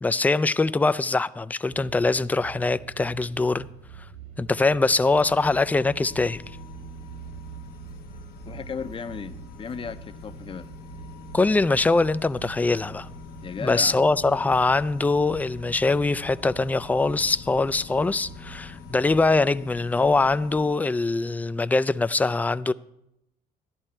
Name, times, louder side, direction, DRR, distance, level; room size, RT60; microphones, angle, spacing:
voice 1, 0.0-3.7 4.4-6.4 11.3-13.1 13.6-22.7, left 3 dB, 10° left, 0.3 m, -23 dB
sound 1, 1.7-19.4, right 7 dB, 70° right, 2.4 m, -45 dB
sound 2, 5.1-20.7, left 7 dB, 65° left, 0.9 m, -45 dB
voice 2, 8.5-10.7 13.4-14.0, left 6 dB, 30° left, 0.6 m, -35 dB
12.5 x 11.0 x 4.4 m
cardioid pair, 110°, 17 cm